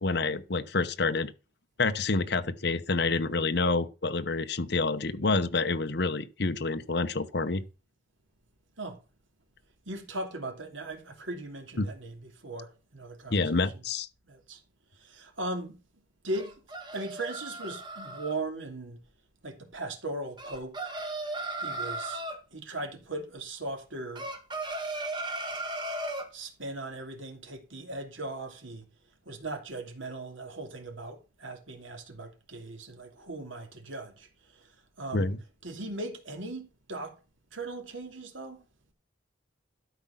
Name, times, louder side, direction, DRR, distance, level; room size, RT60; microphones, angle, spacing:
voice 1, 0.0-1.3 1.8-7.6 11.8-11.9 13.3-14.1 35.1-35.4, left 3 dB, 55° left, 0.9 m, -28 dB
voice 2, 9.9-13.7 14.3-14.6 15.0-15.8 16.2-16.6 16.9-19.0 19.4-20.9 21.6-22.2 22.5-24.2 26.3-28.9 29.3-34.3 34.5-34.7 35.0-35.3 35.6-37.1 37.5-38.6, right 2 dB, 75° right, 2.8 m, -38 dB
sound 1, 16.3-18.3 20.4-22.4 24.1-26.3, right 2 dB, 25° right, 1.8 m, -36 dB
12.5 x 5.0 x 5.7 m
head